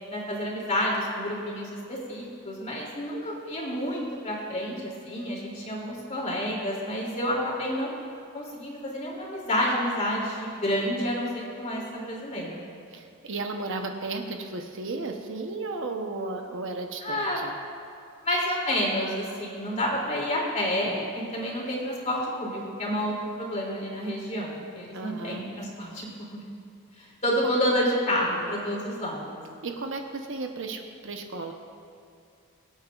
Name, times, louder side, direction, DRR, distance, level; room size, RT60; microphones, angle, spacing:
voice 1, 0.1-7.9 8.3-12.6 17.0-17.4 18.2-26.4 27.0-29.4, equal, 35° left, -4 dB, 2.8 m, -29 dB
voice 2, 12.9-17.5 24.9-25.5 29.6-31.5, right 3 dB, 65° right, 4 dB, 0.9 m, -34 dB
23.0 x 8.9 x 2.4 m, 2.5 s
head